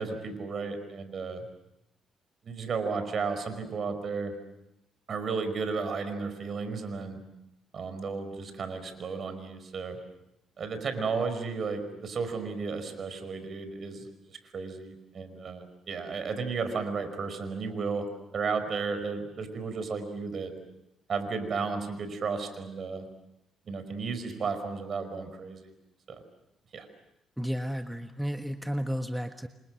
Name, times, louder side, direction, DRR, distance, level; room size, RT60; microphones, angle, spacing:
voice 1, 0.0-1.4 2.4-4.3 5.1-7.2 7.7-10.0 10.6-18.1 18.3-20.5 21.1-23.1 23.7-25.7 26.1-26.2 26.7-26.9, right 4 dB, 50° right, 9 dB, 5.2 m, -33 dB
voice 2, 27.4-29.5, equal, 5° right, 6 dB, 1.4 m, -32 dB
29.5 x 26.0 x 6.4 m, 0.85 s
cardioid pair, 90°, 0 cm